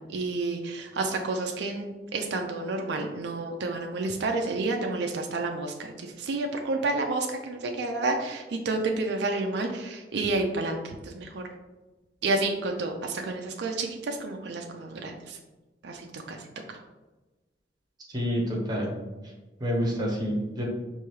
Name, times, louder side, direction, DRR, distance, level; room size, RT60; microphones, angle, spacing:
voice 1, 0.1-11.4 12.2-15.4 15.8-16.4 16.7-16.8, right 3 dB, 65° right, 3 dB, 0.4 m, -30 dB
voice 2, 18.1-18.9 19.6-20.7, equal, 25° right, -2 dB, 0.9 m, -28 dB
4.7 x 2.7 x 3.0 m, 1.2 s
head